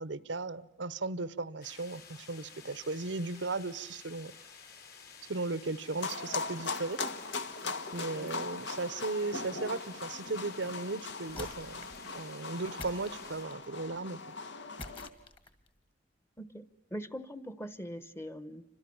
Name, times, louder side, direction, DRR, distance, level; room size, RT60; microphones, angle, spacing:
voice 1, 0.0-4.3 5.3-7.0 7.9-14.2, right 3 dB, 85° right, 17 dB, 1.0 m, -36 dB
sound 1, 1.6-13.4, left 6 dB, 60° left, 5.2 m, -52 dB
sound 2, 6.0-15.1, left 4 dB, 80° left, 1.7 m, -40 dB
sound 3, 11.3-12.1 12.8-13.7 14.8-15.7, left 2 dB, 30° left, 2.0 m, -46 dB
voice 2, 16.4-18.6, equal, 15° left, 14 dB, 1.1 m, -42 dB
29.5 x 26.0 x 7.2 m, 0.79 s
head